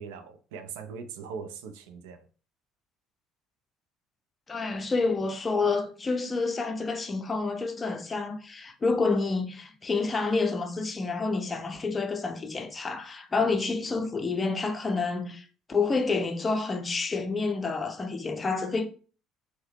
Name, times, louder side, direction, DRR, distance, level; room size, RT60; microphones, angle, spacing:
voice 1, 0.0-2.2, right 6 dB, 65° right, 0.4 m, -40 dB
voice 2, 4.5-18.9, left 4 dB, 25° left, 0.5 m, -28 dB
2.7 x 2.0 x 3.2 m
figure-of-eight pair, 55°, 0 cm